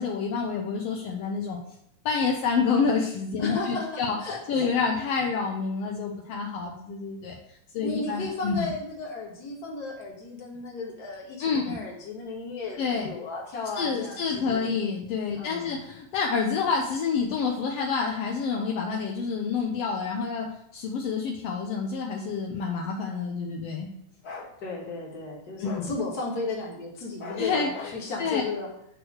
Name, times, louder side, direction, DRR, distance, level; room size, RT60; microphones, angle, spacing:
voice 1, 0.0-1.6 2.0-4.2 4.5-7.3 7.7-8.7 11.4-11.8 12.8-13.1 13.7-23.9 25.6-25.9 27.4-28.4, left 5 dB, 80° left, 0 dB, 1.4 m, -28 dB
voice 2, 3.4-4.7 7.8-14.7 15.4-15.8 24.6-28.7, left 3 dB, 40° left, -3 dB, 1.6 m, -34 dB
Bark, 24.2-24.5 25.6-25.9 27.2-28.0, left 4 dB, 65° left, 0.9 m, -39 dB
8.1 x 3.1 x 6.2 m, 0.74 s
omnidirectional pair, 3.7 m